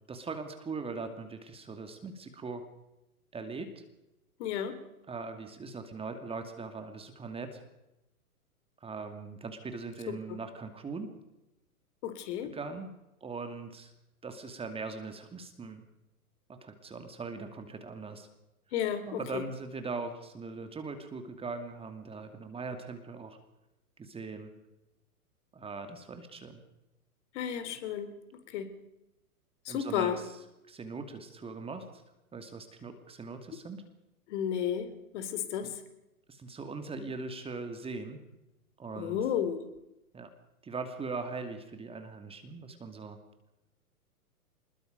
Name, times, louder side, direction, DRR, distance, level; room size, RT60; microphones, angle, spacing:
voice 1, 0.1-2.6 3.3-3.8 5.1-7.6 8.8-11.1 12.5-12.9 13.2-13.9 14.2-15.8 16.6-18.3 19.0-23.4 24.0-24.5 25.5-26.6 29.7-31.9 32.3-33.8 35.6-35.7 36.3-38.2 38.8-39.2 40.1-40.3 40.6-43.2, right 4 dB, 10° right, 7 dB, 2.4 m, -40 dB
voice 2, 4.4-4.8 10.1-10.4 12.0-12.5 18.7-19.4 27.3-28.1 28.5-28.7 29.6-30.2 34.3-35.7 39.0-39.6, left 9 dB, 50° left, 10 dB, 3.4 m, -33 dB
26.0 x 21.5 x 5.2 m, 0.92 s
hypercardioid pair, 120°, 45 cm